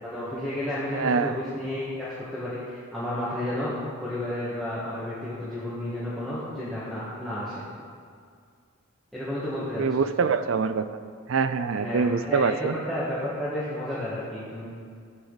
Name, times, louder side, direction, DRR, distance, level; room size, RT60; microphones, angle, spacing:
voice 1, 0.0-3.7 4.0-7.6 9.1-10.0 11.7-14.7, left 1 dB, ahead, -12 dB, 1.7 m, -32 dB
voice 2, 0.9-1.4 9.8-10.9 11.3-12.7, right 5 dB, 60° right, 11 dB, 0.4 m, -24 dB
13.0 x 8.4 x 4.0 m, 2.2 s
head